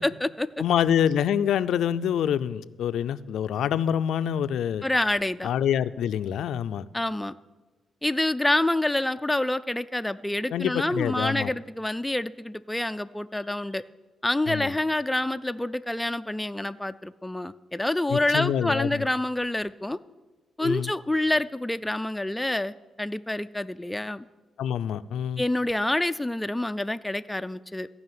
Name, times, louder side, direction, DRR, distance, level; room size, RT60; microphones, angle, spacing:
voice 1, 0.0-0.5 4.8-5.5 6.9-7.3 8.0-13.8 14.2-20.0 20.6-24.2 25.4-27.9, left 1 dB, 5° left, 11 dB, 0.3 m, -27 dB
voice 2, 0.6-4.8 5.4-6.9 10.5-11.5 14.5-14.7 18.1-19.1 20.6-20.9 24.6-25.4, left 9 dB, 85° left, 14 dB, 0.4 m, -26 dB
14.5 x 5.6 x 9.3 m, 1.2 s
cardioid pair, 135°, 0 cm